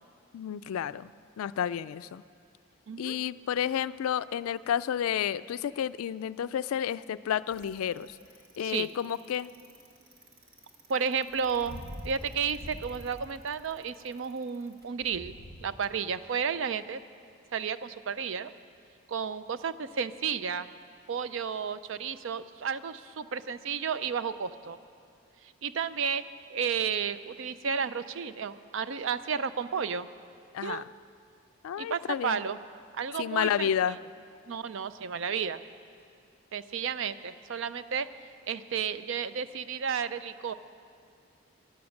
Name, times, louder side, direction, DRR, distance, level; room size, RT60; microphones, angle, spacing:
voice 1, 0.3-1.1 1.4-2.2 3.0-8.2 8.6-9.5 30.5-30.8 31.6-32.4 33.2-34.0, left 9 dB, 90° left, 16 dB, 0.3 m, -31 dB
Bicycle, 7.5-15.6, equal, 50° right, 1.5 m, -46 dB
voice 2, 10.9-15.3 15.6-17.0 17.5-18.5 19.1-20.7 21.1-24.8 25.6-26.2 26.5-30.1 30.6-30.8 31.8-32.6 33.0-33.7 34.5-35.6 36.5-38.1 38.5-40.5, right 6 dB, 65° right, 14 dB, 0.4 m, -32 dB
13.0 x 11.0 x 6.4 m, 2.4 s
head